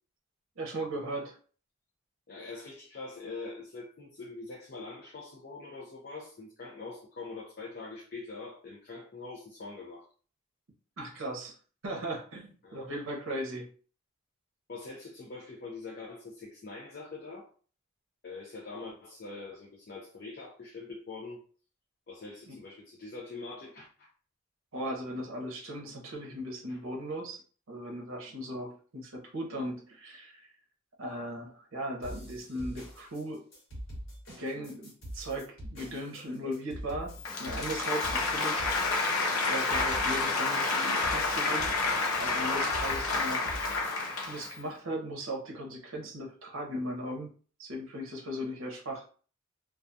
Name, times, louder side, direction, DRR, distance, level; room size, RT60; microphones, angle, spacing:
voice 1, 0.6-1.4 11.0-11.5 11.8-13.7 22.5-22.6 24.7-27.4 27.7-30.4 31.0-33.4 34.3-38.7 39.4-41.7 42.2-43.7 44.2-47.3 47.6-49.0, equal, 75° right, -1 dB, 0.6 m, -37 dB
voice 2, 2.3-10.1 12.6-12.9 14.7-17.5 18.2-21.4 22.1-24.1 26.7-26.8, left 3 dB, 45° left, -2 dB, 0.5 m, -44 dB
sound 1, 32.0-43.9, equal, 60° left, 1.1 m, -44 dB
Applause, 37.2-44.6, left 3 dB, 85° left, 0.7 m, -29 dB
2.3 x 2.3 x 2.6 m, 0.41 s
head